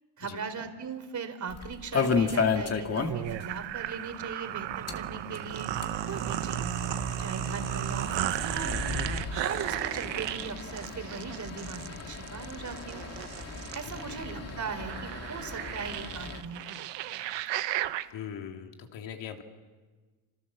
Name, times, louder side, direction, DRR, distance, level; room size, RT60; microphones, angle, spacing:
voice 1, 0.2-5.7 6.1-6.7 7.2-9.0 9.3-13.0 13.7-16.7, right 5 dB, 40° right, 7 dB, 3.6 m, -39 dB
sound 1, 1.5-3.5 3.7-3.8 4.1-4.2 4.7-16.4, left 5 dB, 35° left, 2.5 m, -34 dB
sound 2, 3.1-18.1, right 13 dB, 70° right, 1.1 m, -35 dB
voice 2, 18.1-19.4, left 8 dB, 70° left, 4 dB, 3.1 m, -42 dB
29.0 x 27.5 x 7.4 m, 1.3 s
cardioid pair, 110°, 45 cm